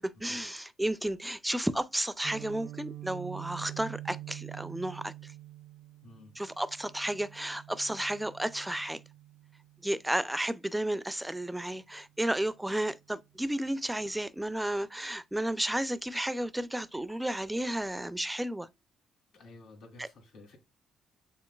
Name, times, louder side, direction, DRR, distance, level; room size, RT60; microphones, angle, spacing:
voice 1, 0.0-5.3 6.4-9.0 9.8-18.7, right 1 dB, 5° right, 0.4 m, -32 dB
Guitar, 2.2-10.1, right 14 dB, 65° right, 0.4 m, -46 dB
voice 2, 6.0-6.3 19.3-20.6, left 2 dB, 75° left, 2.8 m, -52 dB
7.0 x 2.9 x 2.3 m
cardioid pair, 90°, 0 cm